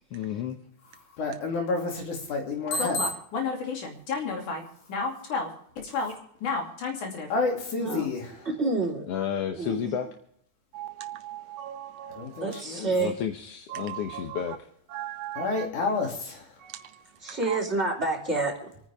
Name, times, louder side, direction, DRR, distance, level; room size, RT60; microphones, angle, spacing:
voice 1, 0.1-0.6 9.1-10.1 13.0-14.6, left 9 dB, 65° left, 1.7 m, -31 dB
voice 2, 1.2-4.6 4.9-5.5 5.8-6.1 6.4-8.3 12.1-12.9 15.4-16.5, left 3 dB, 80° left, 4.2 m, -30 dB
voice 3, 7.8-8.1 8.4-9.1 9.5-9.9 12.4-13.1 17.2-18.7, right 3 dB, 20° right, 3.4 m, -28 dB
voice 4, 10.7-12.4 13.7-14.4 14.9-15.6 16.7-16.8 17.5-17.6, right 12 dB, 70° right, 1.8 m, -38 dB
27.0 x 9.7 x 3.6 m
omnidirectional pair, 3.5 m